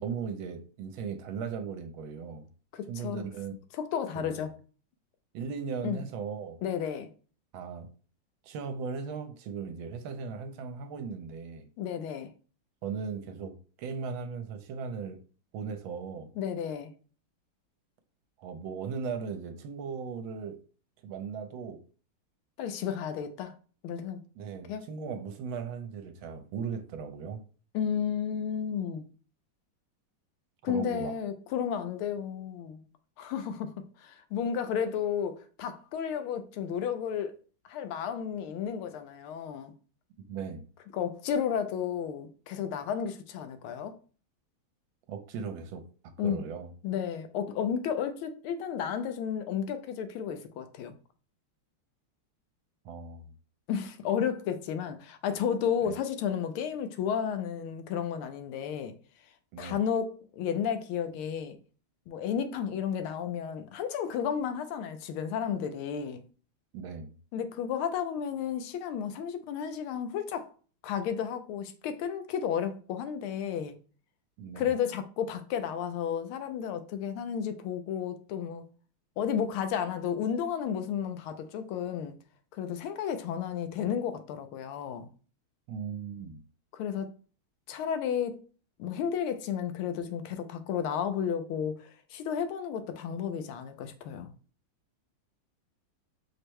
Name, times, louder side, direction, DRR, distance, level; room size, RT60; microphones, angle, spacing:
voice 1, 0.0-2.5 2.9-3.5 4.2-4.4 5.3-6.6 7.5-7.9 8.4-11.7 12.8-15.2 15.5-16.3 18.4-20.6 21.0-21.8 24.4-27.4 30.7-31.1 40.3-40.6 45.1-45.8 46.2-46.7 52.8-53.3 55.8-56.0 59.5-59.8 66.7-67.1 74.4-74.7 85.7-86.4, right 6 dB, 80° right, 1.4 m, -37 dB
voice 2, 2.7-3.3 3.7-4.5 5.8-6.0 6.6-7.1 11.8-12.3 16.4-16.9 22.6-23.5 23.8-24.2 24.7-24.9 27.7-29.0 30.6-32.8 33.2-33.7 34.0-37.3 37.7-39.7 40.9-43.9 46.2-46.4 46.8-51.0 53.7-58.9 59.6-61.6 62.1-66.2 67.3-70.4 70.8-73.7 74.6-78.7 79.2-82.1 82.5-85.1 86.7-87.1 87.7-88.4 88.8-94.3, left 8 dB, 85° left, 1.5 m, -32 dB
4.9 x 2.1 x 4.5 m
omnidirectional pair, 2.3 m